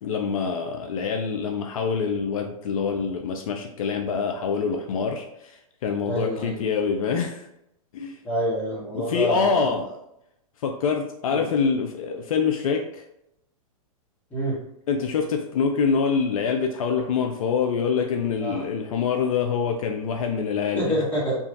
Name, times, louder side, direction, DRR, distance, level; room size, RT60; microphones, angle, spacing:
voice 1, 0.0-7.4 7.9-8.2 8.9-9.9 10.6-13.0 14.9-20.9, left 6 dB, 65° left, 4 dB, 0.4 m, -25 dB
voice 2, 6.0-6.6 8.2-9.7 11.3-11.5 14.3-14.6 18.4-18.6 20.7-21.4, right 1 dB, 10° left, -7 dB, 1.3 m, -27 dB
2.9 x 2.4 x 2.6 m, 0.81 s
hypercardioid pair, 115°, 19 cm